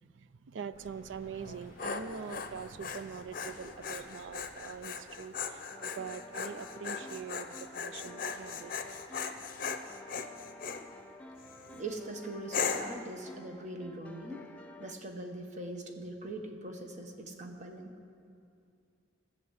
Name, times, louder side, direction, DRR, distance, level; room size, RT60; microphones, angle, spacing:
voice 1, 0.0-8.7, right 6 dB, 70° right, 15 dB, 0.4 m, -43 dB
sound 1, 0.7-5.1, equal, 15° right, 1.9 m, -57 dB
Dog, 1.4-10.8 11.4-11.8 12.5-13.0, left 5 dB, 45° left, 0.7 m, -38 dB
sound 2, 5.7-14.9, left 2 dB, 5° left, 0.5 m, -51 dB
voice 2, 11.7-14.5 14.8-17.9, right 2 dB, 40° right, 3 dB, 1.1 m, -42 dB
14.5 x 6.9 x 8.0 m, 2.4 s
head